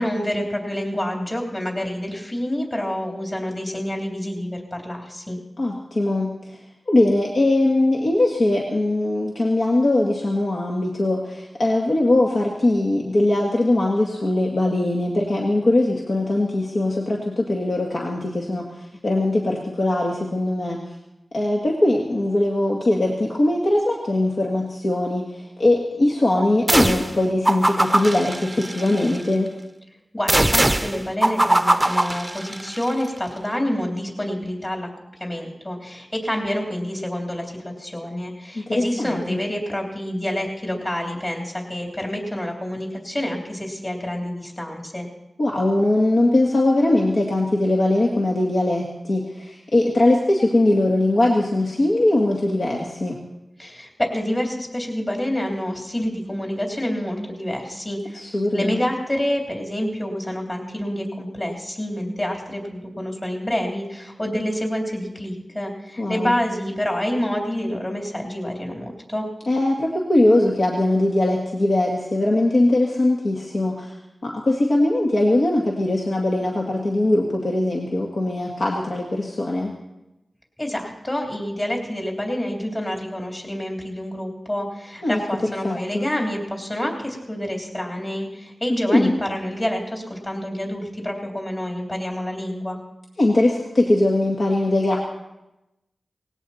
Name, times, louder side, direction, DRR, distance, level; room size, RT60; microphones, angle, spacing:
voice 1, 0.0-5.4 30.1-34.9 35.2-45.1 53.6-69.3 80.6-92.8, equal, 30° left, 1 dB, 3.3 m, -27 dB
voice 2, 5.6-6.6 6.9-20.8 21.3-29.5 38.6-39.4 45.4-53.2 58.1-58.8 66.0-66.3 69.5-74.0 74.2-79.7 85.0-86.1 88.9-89.1 93.2-95.0, left 1 dB, 70° left, -2 dB, 2.0 m, -21 dB
sound 1, 26.7-27.2 27.5-29.2 30.3-32.9, right 1 dB, 20° right, 0.7 m, -21 dB
19.0 x 16.5 x 4.3 m, 0.94 s
wide cardioid pair, 60°, 0 cm